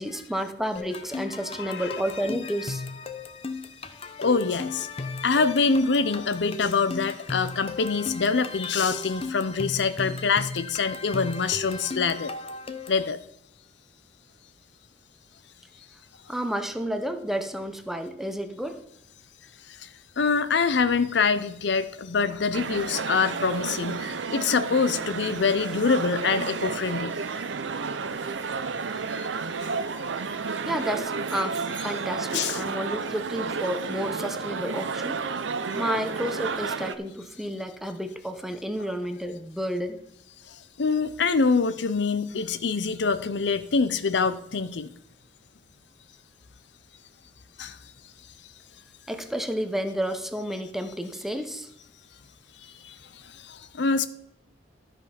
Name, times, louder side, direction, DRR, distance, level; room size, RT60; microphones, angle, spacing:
voice 1, 0.0-2.8 16.3-18.8 30.6-35.3 35.7-40.0 49.1-51.7, equal, ahead, 7 dB, 0.8 m, -31 dB
sound 1, 0.8-13.1, left 3 dB, 35° left, 0.8 m, -36 dB
voice 2, 4.2-4.9 5.2-12.3 12.9-13.2 19.8-19.9 20.2-27.1 29.1-29.3 29.6-29.7 32.3-32.6 40.5-44.9 47.6-47.8 52.8-54.1, left 4 dB, 70° left, 12 dB, 0.6 m, -25 dB
sound 2, 22.5-36.9, right 4 dB, 90° right, 0.6 m, -31 dB
12.5 x 5.3 x 5.8 m, 0.83 s
head